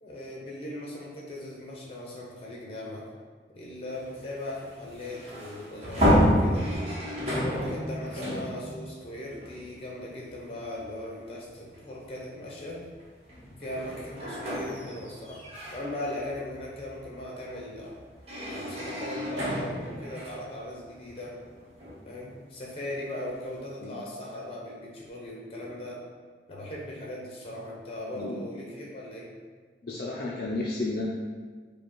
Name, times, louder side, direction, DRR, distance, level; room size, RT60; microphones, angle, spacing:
voice 1, 0.0-3.1 3.5-6.7 7.2-12.9 13.6-15.4 15.7-17.9 18.5-21.4 22.0-26.0 26.5-29.3, left 1 dB, 35° left, -3 dB, 0.9 m, -38 dB
sound 1, 3.9-10.3 10.7-10.8 11.9-12.1 12.6-22.3, equal, 35° right, 1.2 m, -30 dB
voice 2, 29.8-31.1, left 2 dB, 60° left, -5 dB, 0.5 m, -32 dB
5.0 x 2.3 x 4.5 m, 1.5 s
head